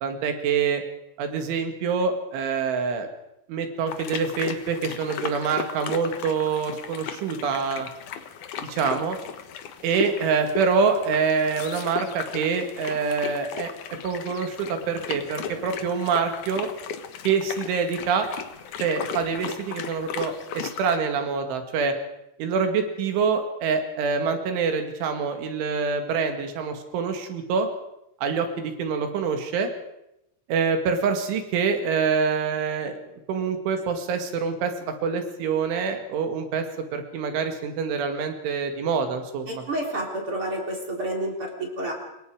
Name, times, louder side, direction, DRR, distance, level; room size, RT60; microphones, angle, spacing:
voice 1, 0.0-0.8 1.2-3.1 3.5-7.9 8.6-9.2 9.8-13.7 14.0-16.7 17.2-18.3 18.8-21.9 22.4-27.7 28.2-29.7 30.5-33.0 33.3-36.7 36.9-39.6, right 5 dB, 80° right, 6 dB, 4.6 m, -26 dB
sound 1, 3.9-21.0, left 8 dB, 70° left, 1.9 m, -36 dB
voice 2, 39.5-41.9, right 1 dB, 30° right, 1 dB, 3.7 m, -29 dB
26.0 x 22.5 x 5.1 m, 0.85 s
omnidirectional pair, 5.5 m